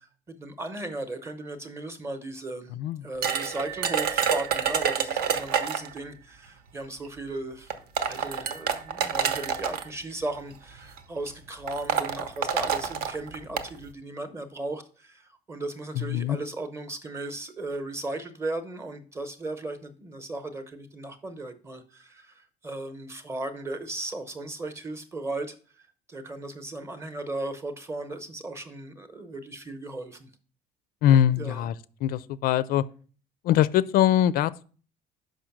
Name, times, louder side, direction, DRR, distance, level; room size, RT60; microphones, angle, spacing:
voice 1, 0.3-30.3 31.1-31.7, right 2 dB, 15° right, 0.8 m, -36 dB
voice 2, 2.7-3.0 16.0-16.4 31.0-31.7 32.0-32.8 33.4-34.6, left 11 dB, 60° left, 0.4 m, -22 dB
sound 1, 3.2-6.0 7.1-7.2 7.7-9.8 10.8-11.0 11.3-11.4 11.7-13.7, right 7 dB, 65° right, 0.8 m, -27 dB
6.2 x 5.2 x 5.9 m
cardioid pair, 165°, 17 cm